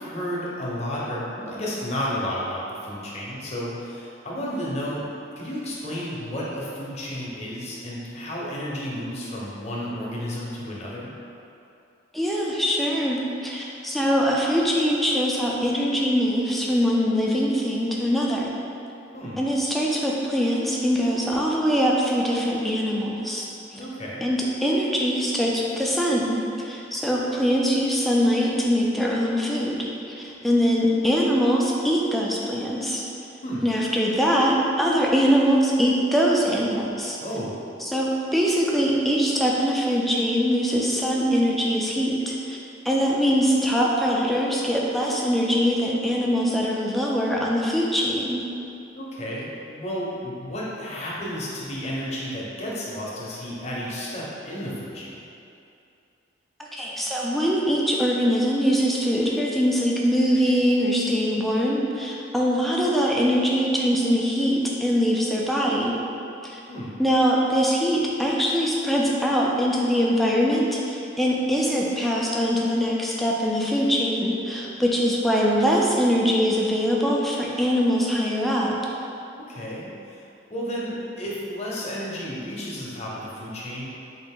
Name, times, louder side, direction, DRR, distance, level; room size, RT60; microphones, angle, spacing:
voice 1, 0.0-5.1 5.4-11.1 19.1-19.4 23.7-24.3 33.4-33.7 37.2-37.6 48.9-55.2 66.7-66.9 79.4-80.2 80.5-83.9, equal, 35° left, -5 dB, 0.7 m, -32 dB
voice 2, 12.1-18.5 19.4-23.5 24.2-33.0 33.6-37.2 37.9-42.6 42.8-48.4 56.6-66.0 66.4-66.6 67.0-78.7, equal, ahead, -4 dB, 0.3 m, -22 dB
3.9 x 2.5 x 3.6 m, 2.7 s
head